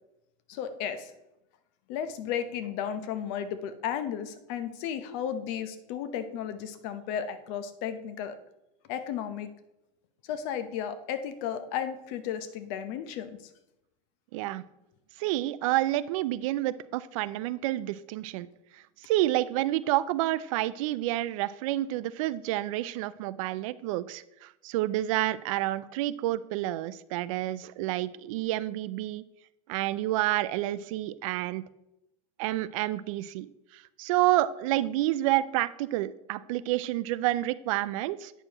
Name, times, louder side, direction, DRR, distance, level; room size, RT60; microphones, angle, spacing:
voice 1, 0.5-1.1 1.9-8.3 8.9-9.5 10.3-13.3, left 8 dB, 60° left, 11 dB, 0.8 m, -34 dB
voice 2, 14.3-14.6 15.2-18.5 18.7-29.2 29.7-31.6 32.4-38.3, right 15 dB, 75° right, 17 dB, 0.4 m, -29 dB
8.9 x 6.5 x 2.9 m, 0.89 s
supercardioid pair, 140°, 17 cm